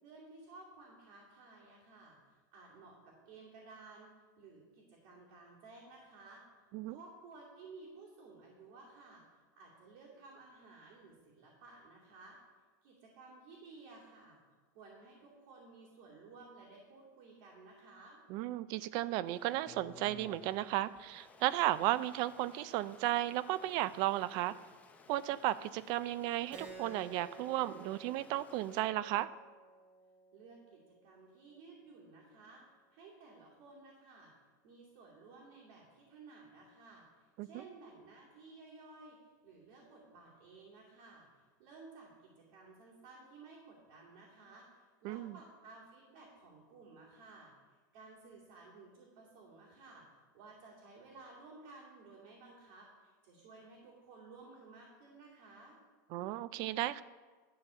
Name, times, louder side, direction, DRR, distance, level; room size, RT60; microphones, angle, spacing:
voice 1, 0.0-6.4 6.9-12.4 12.8-14.4 14.7-18.2 30.3-32.6 32.9-34.3 34.6-55.8, right 3 dB, 60° right, -6 dB, 2.5 m, -56 dB
voice 2, 18.3-24.5 25.1-29.3 37.4-37.5 45.0-45.3 56.1-57.0, right 14 dB, 45° right, 17 dB, 0.3 m, -34 dB
Stream, 19.2-28.9, left 4 dB, 15° left, 0.6 m, -59 dB
Keyboard (musical), 26.5-31.6, right 3 dB, 15° right, 1.2 m, -54 dB
11.5 x 4.0 x 6.9 m, 1.4 s
supercardioid pair, 150°, 11 cm